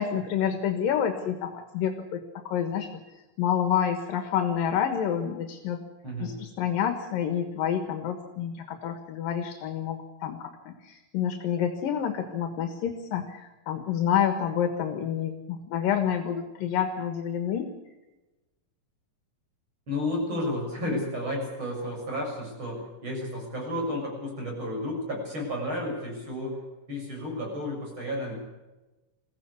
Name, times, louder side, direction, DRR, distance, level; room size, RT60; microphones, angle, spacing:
voice 1, 0.0-3.0 3.4-5.8 6.2-17.7, left 8 dB, 80° left, 7 dB, 3.2 m, -28 dB
voice 2, 6.0-6.4 19.9-28.3, left 1 dB, 35° right, 0 dB, 7.7 m, -32 dB
22.5 x 16.0 x 8.3 m, 1.1 s
omnidirectional pair, 3.9 m